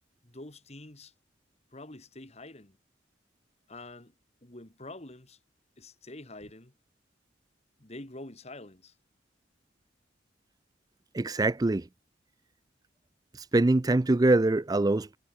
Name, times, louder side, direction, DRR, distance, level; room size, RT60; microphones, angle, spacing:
voice 1, 0.2-1.1 1.7-2.8 3.7-4.1 4.4-5.4 5.8-6.7 7.8-8.9, left 2 dB, 35° left, 2.5 m, -46 dB
voice 2, 11.1-11.9 13.3-15.2, right 2 dB, 20° right, 0.4 m, -24 dB
head